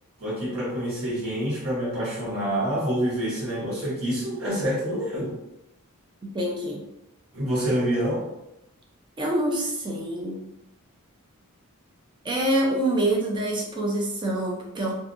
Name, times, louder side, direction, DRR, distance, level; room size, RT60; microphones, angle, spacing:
voice 1, 0.2-5.4 7.3-8.3, equal, 65° right, -8 dB, 1.2 m, -27 dB
voice 2, 6.3-6.8 9.2-10.4 12.2-14.9, right 1 dB, 20° right, -2 dB, 0.5 m, -26 dB
2.6 x 2.3 x 2.5 m, 0.87 s
head